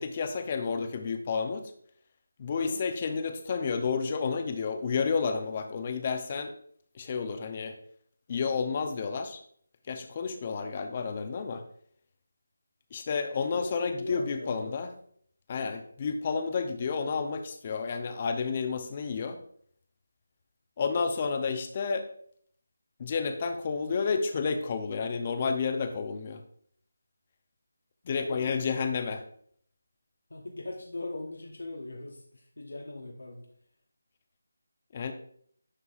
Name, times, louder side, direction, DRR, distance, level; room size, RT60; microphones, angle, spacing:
voice 1, 0.0-1.6 2.4-6.5 6.9-7.7 8.3-9.4 9.9-11.6 12.9-14.9 15.5-19.4 20.8-22.1 23.0-26.4 28.0-29.2 34.9-35.1, left 5 dB, 30° left, 8 dB, 0.7 m, -31 dB
voice 2, 2.5-2.8 13.3-14.8 28.2-28.6 30.3-33.5, left 2 dB, 80° left, 1 dB, 1.1 m, -40 dB
9.9 x 5.4 x 2.5 m, 0.62 s
figure-of-eight pair, 165°, 0 cm